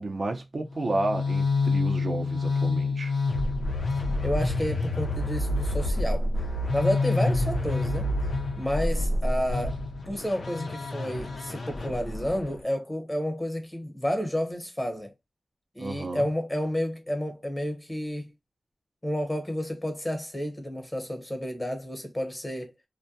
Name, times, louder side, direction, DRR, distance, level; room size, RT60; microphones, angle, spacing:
voice 1, 0.0-3.1 15.8-16.3, right 2 dB, 60° right, 0.6 m, -31 dB
sound 1, 0.7-12.6, left 2 dB, 80° left, 0.6 m, -28 dB
voice 2, 4.2-6.3 6.7-8.1 8.6-9.8 10.1-15.1 15.7-18.3 19.0-22.7, equal, 20° left, 1.0 m, -30 dB
2.2 x 2.1 x 2.6 m
cardioid pair, 45°, 0 cm